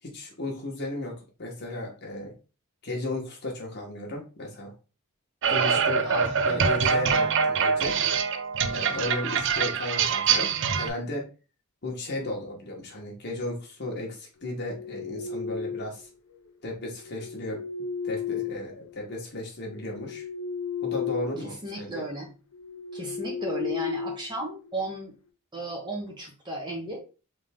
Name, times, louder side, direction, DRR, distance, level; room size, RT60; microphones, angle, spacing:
voice 1, 0.1-1.1 1.4-2.3 2.8-4.7 5.5-8.0 8.7-11.2 11.8-16.1 16.6-17.6 18.0-20.3 20.8-22.0, left 1 dB, 50° left, 0 dB, 1.4 m, -34 dB
sound 1, 5.4-10.9, right 6 dB, 55° right, 0.5 m, -24 dB
voice 2, 6.1-6.6 21.4-22.3 22.9-25.1 25.5-27.0, right 2 dB, 20° right, 0 dB, 1.0 m, -35 dB
sound 2, 14.5-16.0 17.0-19.2 19.6-21.5 21.8-22.0 22.5-24.9, left 7 dB, 80° left, 0.6 m, -34 dB
3.6 x 3.5 x 3.5 m, 0.33 s
head